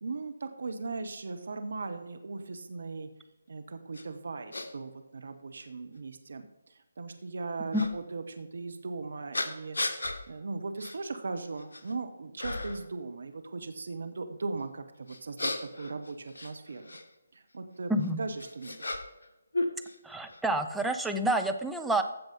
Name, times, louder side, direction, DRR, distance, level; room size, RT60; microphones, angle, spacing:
voice 1, 0.0-3.1 3.5-9.9 10.3-16.9 17.3-17.9 18.2-18.7, right 3 dB, 60° right, 8 dB, 1.0 m, -38 dB
sound 1, 3.9-4.0 4.5-4.7 5.6-5.7 7.7-7.9 9.3-10.2 10.8-11.0 11.4-11.9 12.4-12.9 15.1-17.0 18.0-19.3 19.5-20.4, left 2 dB, 70° left, 1.4 m, -35 dB
voice 2, 20.0-22.0, right 1 dB, 5° right, 5 dB, 0.6 m, -28 dB
15.0 x 5.3 x 5.4 m, 0.99 s
figure-of-eight pair, 145°, 0 cm